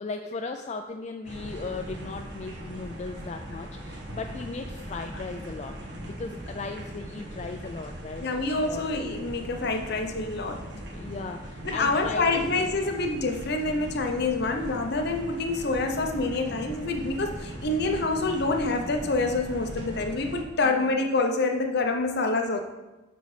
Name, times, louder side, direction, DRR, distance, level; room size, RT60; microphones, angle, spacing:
voice 1, 0.0-8.3 8.7-8.8 10.7-12.5 20.6-20.9, left 4 dB, 35° left, 4 dB, 0.4 m, -37 dB
sound 1, 1.2-20.4, right 1 dB, 65° right, 1.3 m, -39 dB
voice 2, 8.2-10.6 11.6-22.6, left 3 dB, 60° left, 4 dB, 0.8 m, -27 dB
9.0 x 4.0 x 4.9 m, 1.1 s
head